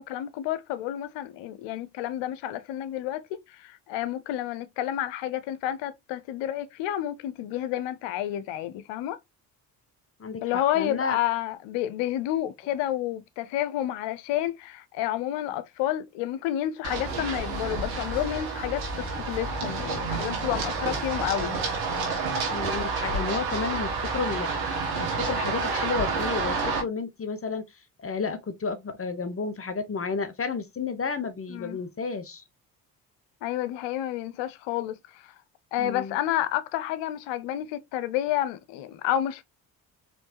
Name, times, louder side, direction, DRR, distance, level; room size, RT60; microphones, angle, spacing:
voice 1, 0.0-9.2 10.4-21.6 31.5-31.8 33.4-35.3 35.7-39.4, left 12 dB, 75° left, 0.7 m, -30 dB
voice 2, 10.2-11.2 22.5-24.5 25.0-27.6 28.0-32.4 35.8-36.2, left 4 dB, 30° left, 1.0 m, -31 dB
Run, 16.8-26.8, right 4 dB, 85° right, 1.6 m, -29 dB
4.3 x 3.2 x 2.9 m
hypercardioid pair, 50°, 43 cm